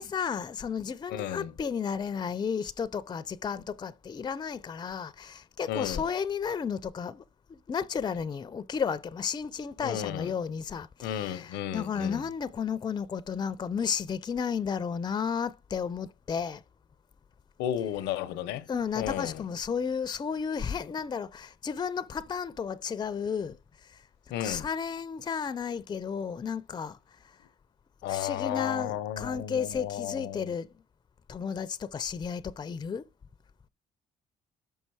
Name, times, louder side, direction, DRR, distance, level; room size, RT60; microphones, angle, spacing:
voice 1, 0.0-7.2 7.5-16.6 18.7-23.6 24.4-27.0 28.1-30.7 31.3-33.0, left 6 dB, 25° left, 0.4 m, -33 dB
voice 2, 1.1-1.5 5.7-6.1 9.8-10.3 11.0-12.3 17.6-18.7 19.0-19.4 24.3-24.7 28.0-30.5, left 11 dB, 90° left, 0.6 m, -33 dB
5.7 x 5.5 x 4.6 m
cardioid pair, 80°, 17 cm